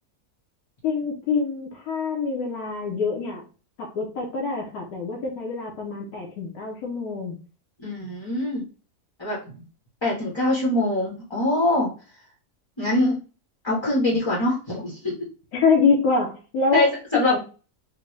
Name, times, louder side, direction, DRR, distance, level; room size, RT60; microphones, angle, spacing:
voice 1, 0.8-3.5 3.8-7.4 15.5-16.9 17.1-17.4, left 4 dB, 80° left, -2 dB, 1.2 m, -25 dB
voice 2, 7.8-8.6 9.2-9.6 10.0-11.9 12.8-13.2 13.6-15.2 16.7-17.4, left 2 dB, 25° left, -5 dB, 0.6 m, -23 dB
3.7 x 2.1 x 3.1 m, 0.36 s
omnidirectional pair, 1.6 m